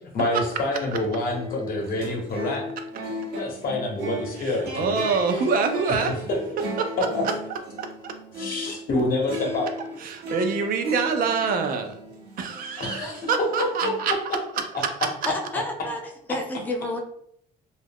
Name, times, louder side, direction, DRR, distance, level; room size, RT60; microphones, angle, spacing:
voice 1, 0.0-2.6 3.0-5.0 7.1-7.2 8.4-9.7 12.8-13.3 13.8-13.9, left 2 dB, 55° left, 1 dB, 0.8 m, -27 dB
sound 1, 0.8-8.8 9.2-14.1, equal, 80° right, 0.8 m, -36 dB
voice 2, 4.4-6.1 6.8-7.3 7.8-8.1 10.0-11.9 12.4-14.1, right 5 dB, 55° right, 6 dB, 0.4 m, -26 dB
voice 3, 15.3-16.0 16.3-17.0, left 1 dB, 10° left, 1 dB, 0.5 m, -29 dB
2.4 x 2.1 x 3.4 m, 0.70 s
cardioid pair, 110°, 17 cm